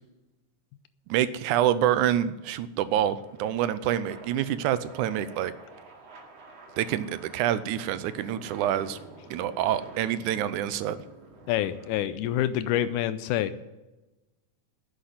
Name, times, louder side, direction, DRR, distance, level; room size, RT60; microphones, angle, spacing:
voice 1, 1.1-5.5 6.8-9.0 9.3-11.0, right 11 dB, 90° right, 14 dB, 2.1 m, -27 dB
sound 1, 2.3-12.1, right 3 dB, 55° right, 3.2 m, -49 dB
voice 2, 11.5-13.6, left 12 dB, 85° left, 13 dB, 2.2 m, -27 dB
10.0 x 8.3 x 9.5 m, 1.1 s
omnidirectional pair, 3.5 m